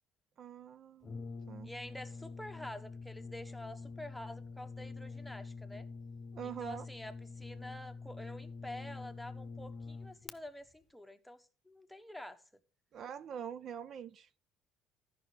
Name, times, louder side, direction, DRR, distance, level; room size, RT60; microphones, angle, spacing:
voice 1, 0.4-1.7 6.3-6.9 12.9-14.3, right 8 dB, 55° right, 0.5 m, -44 dB
Brass instrument, 1.0-10.4, left 4 dB, 35° left, 0.9 m, -46 dB
voice 2, 1.6-5.9 6.4-12.4, left 1 dB, 5° left, 1.2 m, -48 dB
13.5 x 5.5 x 4.0 m
hypercardioid pair, 65°, 0 cm